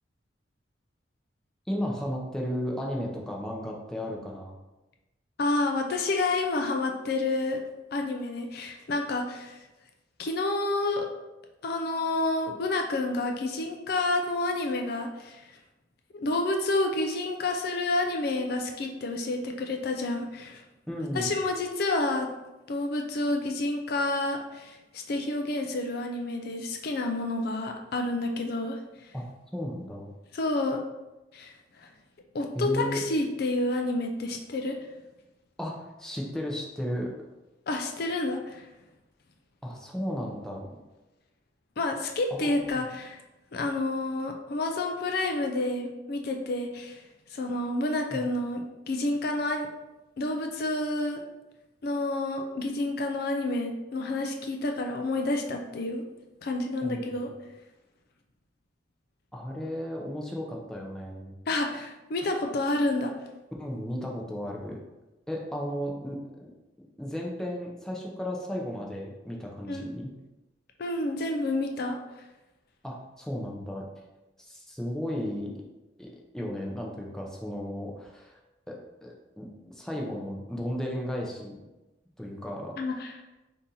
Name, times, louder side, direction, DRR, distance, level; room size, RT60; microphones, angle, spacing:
voice 1, 1.7-4.5 20.9-21.3 29.1-29.3 29.5-30.1 32.5-33.0 35.6-37.1 39.6-40.7 42.3-42.9 48.1-48.3 56.8-57.2 59.3-61.3 63.6-64.8 65.3-66.5 67.0-70.1 72.8-73.8 74.4-75.5 76.0-78.4 78.7-81.6 82.2-82.8, equal, 5° left, -2 dB, 0.6 m, -34 dB
voice 2, 5.4-7.6 7.9-9.6 10.2-11.1 11.6-15.5 16.1-20.6 21.1-22.3 22.7-29.1 30.3-30.8 31.3-31.9 32.3-34.8 37.7-38.7 41.8-43.2 43.5-47.0 47.3-49.7 50.2-51.2 51.8-56.0 56.4-57.3 61.5-63.1 69.7-69.8 70.8-72.0 82.8-83.1, left 2 dB, 55° left, 3 dB, 0.4 m, -29 dB
4.1 x 2.7 x 3.8 m, 1.0 s
head